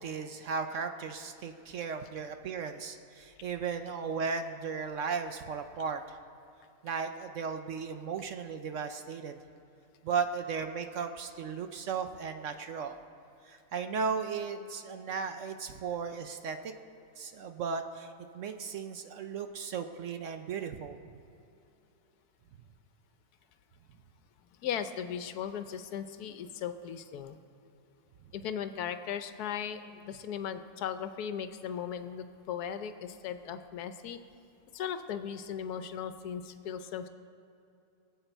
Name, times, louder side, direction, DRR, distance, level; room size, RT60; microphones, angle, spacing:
voice 1, 0.0-6.2 6.8-9.4 10.0-12.9 13.4-16.7 17.2-21.0, right 5 dB, 65° right, 7 dB, 0.9 m, -36 dB
voice 2, 24.6-27.4 28.3-34.2 34.7-37.1, left 8 dB, 80° left, 10 dB, 1.2 m, -37 dB
22.5 x 8.1 x 4.5 m, 2.7 s
omnidirectional pair, 1.6 m